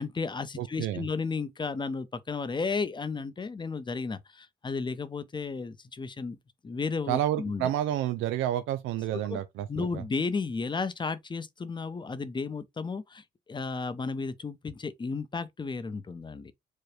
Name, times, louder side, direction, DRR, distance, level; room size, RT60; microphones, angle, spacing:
voice 1, 0.0-6.4 6.6-7.7 9.3-9.4 9.7-16.5, left 4 dB, 25° left, 0.6 m, -33 dB
voice 2, 0.6-1.0 7.1-10.0, right 12 dB, 90° right, 0.4 m, -30 dB
4.8 x 2.1 x 3.1 m
cardioid pair, 90°, 20 cm